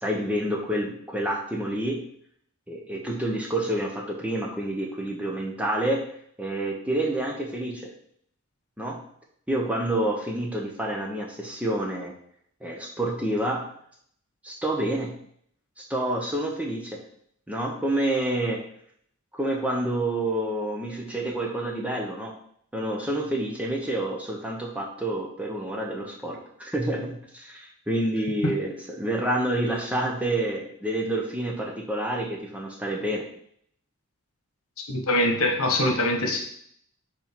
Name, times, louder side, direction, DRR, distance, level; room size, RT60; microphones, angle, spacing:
voice 1, 0.0-2.1 2.7-6.1 6.4-7.9 8.8-9.0 9.5-12.1 12.6-13.7 14.4-15.2 15.8-17.0 17.5-18.6 19.3-22.3 22.7-33.3, right 1 dB, 5° right, -1 dB, 0.8 m, -28 dB
voice 2, 34.9-36.4, left 1 dB, 75° left, 2 dB, 1.3 m, -23 dB
5.2 x 4.5 x 5.2 m, 0.65 s
head